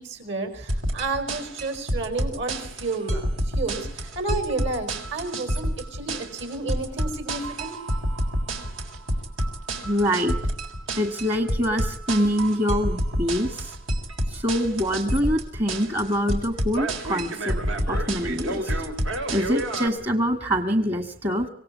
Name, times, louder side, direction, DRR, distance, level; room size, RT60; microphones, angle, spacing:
voice 1, 0.0-7.8, right 3 dB, 60° right, 8 dB, 4.8 m, -31 dB
sound 1, 0.7-19.9, right 1 dB, 75° right, 3.9 m, -29 dB
voice 2, 9.8-10.4 11.0-13.7 14.3-17.5 17.9-18.8 19.3-21.5, equal, 30° right, 6 dB, 1.7 m, -25 dB
25.5 x 18.0 x 8.4 m, 0.74 s
head